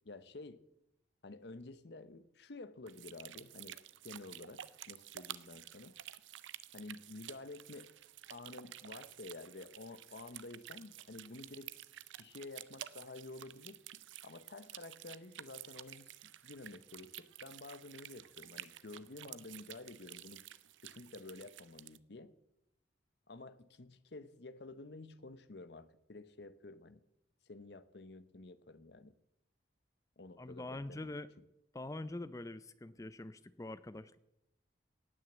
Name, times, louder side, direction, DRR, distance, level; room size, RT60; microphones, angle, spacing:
voice 1, 0.0-0.6 1.2-4.6 4.9-5.9 6.7-7.9 8.3-11.8 12.2-13.8 14.2-20.4 20.8-22.3 23.3-27.0 27.5-29.1 30.2-31.1, left 2 dB, 60° left, 14 dB, 0.8 m, -51 dB
sound 1, 2.9-22.0, right 12 dB, 80° right, 0.5 m, -51 dB
voice 2, 30.4-31.3 31.7-34.2, left 2 dB, 15° left, 15 dB, 0.4 m, -44 dB
17.5 x 6.4 x 8.1 m, 0.88 s
head